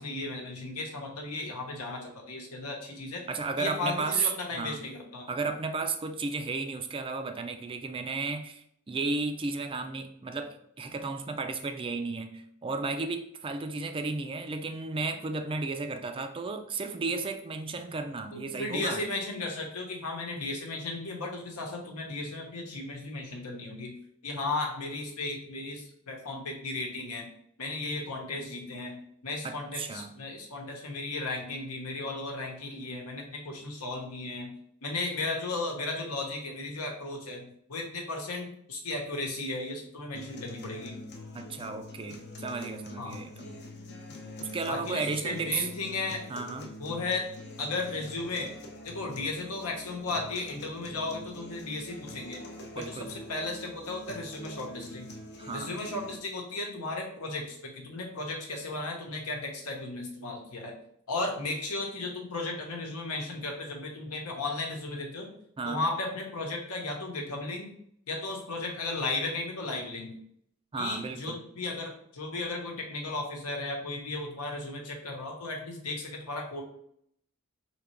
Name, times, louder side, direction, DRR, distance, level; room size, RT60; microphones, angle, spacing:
voice 1, 0.0-3.2 3.6-5.3 18.3-23.9 24.2-27.3 27.6-34.5 34.8-41.0 43.0-43.2 44.7-46.2 46.8-47.3 47.6-48.5 48.8-52.4 52.7-55.1 55.5-60.7 61.1-65.3 65.6-67.7 68.1-70.1 70.8-76.6, left 2 dB, 75° left, 1 dB, 1.1 m, -35 dB
voice 2, 3.3-4.3 4.5-4.8 5.3-19.0 29.4-30.1 41.3-43.6 44.4-45.7 46.3-46.7 52.7-53.1 55.4-55.8 65.6-65.8 70.7-71.4, right 4 dB, 25° right, 6 dB, 0.4 m, -33 dB
sound 1, 40.2-56.2, left 1 dB, 50° left, 0.6 m, -45 dB
3.7 x 2.9 x 4.5 m, 0.69 s
head